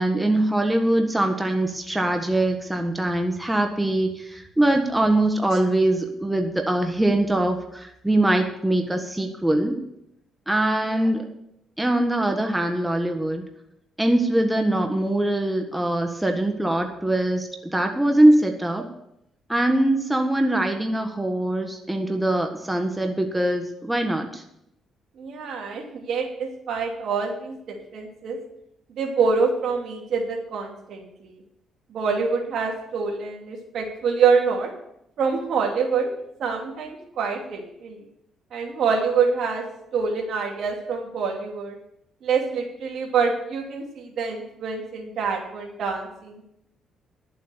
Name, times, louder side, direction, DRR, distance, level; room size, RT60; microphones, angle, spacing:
voice 1, 0.0-9.8 10.5-11.3 11.8-13.4 14.0-18.9 19.5-24.4, right 1 dB, 10° right, 4 dB, 1.5 m, -22 dB
voice 2, 25.2-28.4 29.0-31.4 31.9-34.7 35.2-36.1 36.4-38.0 38.5-39.6 39.9-41.8 42.2-46.4, right 5 dB, 70° right, 2 dB, 2.7 m, -26 dB
11.5 x 7.7 x 6.9 m, 0.78 s
cardioid pair, 90°, 0 cm